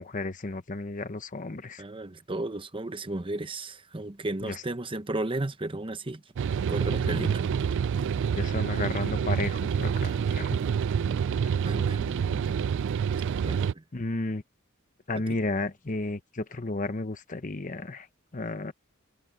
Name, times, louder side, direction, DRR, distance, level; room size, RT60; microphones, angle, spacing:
voice 1, 0.0-1.8 4.4-4.6 6.9-7.3 8.3-10.5 12.0-12.5 13.9-14.4 15.1-18.1 18.3-18.7, left 2 dB, 35° left, 1.0 m, -33 dB
voice 2, 1.8-6.2 6.7-7.4 11.6-12.0 13.4-13.8 15.1-15.4, right 2 dB, 25° right, 0.8 m, -34 dB
sound 1, 6.4-13.7, right 7 dB, 60° right, 0.3 m, -27 dB
head